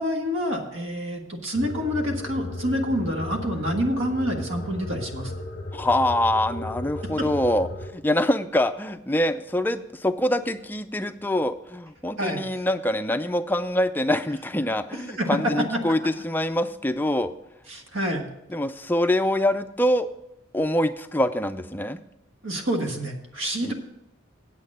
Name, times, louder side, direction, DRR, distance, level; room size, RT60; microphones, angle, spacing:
voice 1, 0.0-5.3 12.2-12.6 15.2-15.3 17.7-18.2 22.4-23.7, equal, 75° right, 3 dB, 1.6 m, -27 dB
sound 1, 1.5-7.9, left 2 dB, 35° left, 0.8 m, -35 dB
voice 2, 5.7-7.7 7.9-17.3 18.5-20.1 20.5-22.0 23.6-23.7, left 1 dB, 10° left, 9 dB, 0.3 m, -24 dB
8.7 x 8.1 x 5.5 m, 0.87 s
head